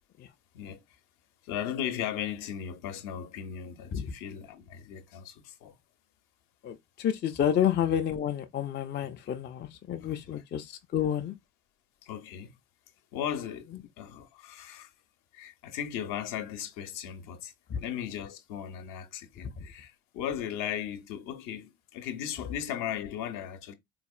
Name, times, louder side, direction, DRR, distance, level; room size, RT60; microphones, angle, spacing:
voice 1, 1.4-5.8 10.0-10.4 12.0-12.5 13.1-13.7 14.0-14.9 15.3-17.5 17.8-23.7, left 9 dB, 55° left, 0.8 m, -37 dB
voice 2, 6.6-11.4 17.7-17.8 19.6-19.7, left 9 dB, 30° left, 0.5 m, -30 dB
4.0 x 3.1 x 2.4 m
figure-of-eight pair, 50°, 38 cm